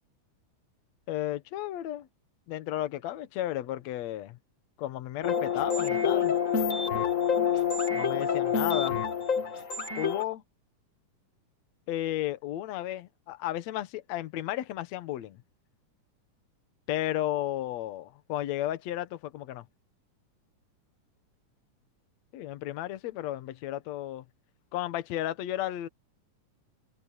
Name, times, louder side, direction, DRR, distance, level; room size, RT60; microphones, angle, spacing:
voice 1, 1.1-2.1 2.5-4.4 4.8-6.4 7.9-9.0 10.0-10.4 11.9-15.4 16.9-19.7 22.3-24.2 24.7-25.9, left 13 dB, 65° left, 2.2 m, -33 dB
sound 1, 5.2-10.2, left 7 dB, 30° left, 1.8 m, -27 dB
omnidirectional pair, 3.7 m